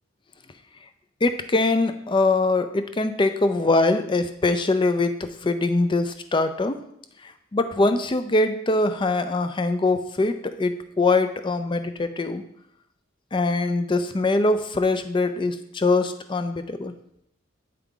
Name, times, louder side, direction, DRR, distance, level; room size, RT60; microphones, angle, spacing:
voice 1, 1.2-6.8 7.2-12.4 13.3-16.9, left 2 dB, 25° left, 10 dB, 0.4 m, -23 dB
8.0 x 4.8 x 3.7 m, 0.75 s
head